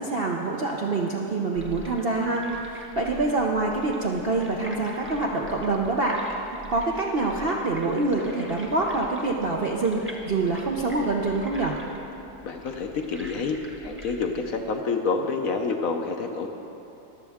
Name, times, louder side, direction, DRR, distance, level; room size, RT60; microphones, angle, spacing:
voice 1, 0.0-6.4 6.7-11.7, right 3 dB, 55° right, -1 dB, 0.7 m, -26 dB
sound 1, 1.5-14.6, equal, 10° right, 0.9 m, -44 dB
voice 2, 12.4-16.5, left 4 dB, 60° left, 4 dB, 1.0 m, -28 dB
22.5 x 7.4 x 3.5 m, 2.9 s
omnidirectional pair, 1.8 m